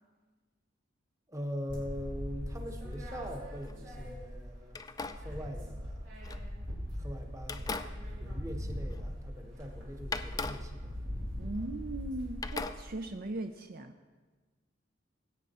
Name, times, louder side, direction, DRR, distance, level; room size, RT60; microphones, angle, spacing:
voice 1, 1.3-4.8 5.2-6.1 6.9-7.7 8.2-11.0, equal, 15° right, 4 dB, 1.1 m, -42 dB
sound 1, 1.7-4.5 4.8-12.6, equal, 85° right, 3.4 m, -41 dB
sound 2, 2.6-3.8 4.7-6.9 7.4-9.3 9.6-9.7 10.1-12.1 12.4-13.4, left 4 dB, 20° left, 0.4 m, -42 dB
voice 2, 11.4-13.9, right 2 dB, 55° right, 7 dB, 0.5 m, -39 dB
16.5 x 8.6 x 4.2 m, 1.3 s
head